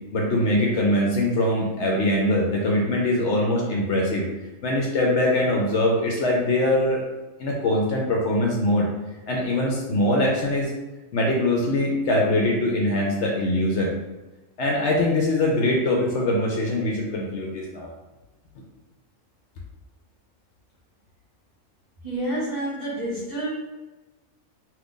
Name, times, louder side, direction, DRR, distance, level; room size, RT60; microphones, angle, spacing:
voice 1, 0.1-4.3 4.6-7.0 7.4-8.9 9.3-10.7 11.1-13.9 14.6-17.9, left 1 dB, 65° left, -1 dB, 0.8 m, -22 dB
voice 2, 22.0-23.5, right 1 dB, 30° right, -9 dB, 0.7 m, -28 dB
2.7 x 2.5 x 3.6 m, 1.1 s
omnidirectional pair, 1.5 m